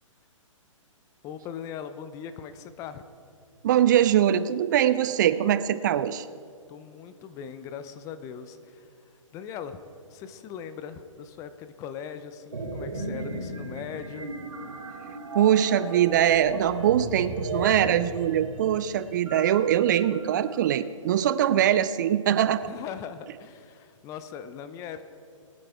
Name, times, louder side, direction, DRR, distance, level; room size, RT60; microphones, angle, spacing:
voice 1, 1.2-3.0 6.7-8.9 9.3-9.8 10.1-14.3 22.6-25.0, left 8 dB, 20° left, 11 dB, 0.5 m, -40 dB
voice 2, 3.6-6.3 15.3-22.6, right 10 dB, 35° right, 14 dB, 0.4 m, -22 dB
sound 1, 12.5-20.6, right 2 dB, 75° right, 2.4 m, -36 dB
22.5 x 9.3 x 3.5 m, 2.3 s
figure-of-eight pair, 130°, 17 cm